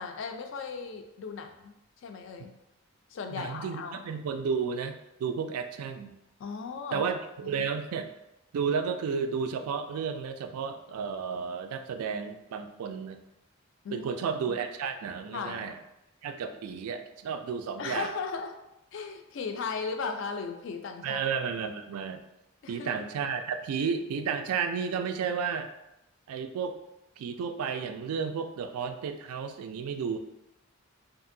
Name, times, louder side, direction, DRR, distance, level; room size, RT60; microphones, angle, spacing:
voice 1, 0.0-2.5 3.1-4.1 6.4-7.0 7.4-7.7 13.8-14.1 14.5-14.6 15.3-15.7 17.8-18.6 18.9-21.2 22.6-22.9, left 5 dB, 60° left, 4 dB, 0.3 m, -37 dB
voice 2, 3.3-6.1 6.9-8.1 8.5-13.2 13.9-15.8 16.2-18.1 21.0-22.2 22.7-25.7 26.3-26.8 27.2-30.2, right 6 dB, 85° right, 12 dB, 0.3 m, -32 dB
2.8 x 2.5 x 2.6 m, 0.89 s
head